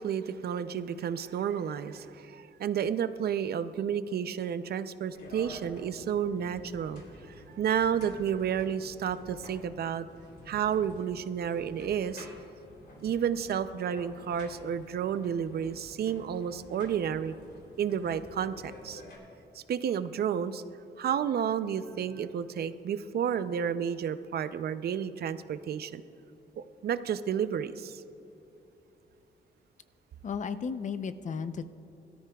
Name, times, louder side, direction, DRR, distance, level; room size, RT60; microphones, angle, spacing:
voice 1, 0.0-7.0 7.3-10.1 10.5-12.3 13.0-17.3 17.8-19.0 19.5-20.6 21.0-26.0 26.6-28.0, right 8 dB, 65° right, 12 dB, 0.5 m, -31 dB
sound 1, 5.1-19.2, left 1 dB, 70° left, 3.1 m, -50 dB
voice 2, 30.2-31.7, left 6 dB, 45° left, 11 dB, 0.6 m, -34 dB
22.0 x 13.0 x 2.3 m, 2.9 s
wide cardioid pair, 140°, 18 cm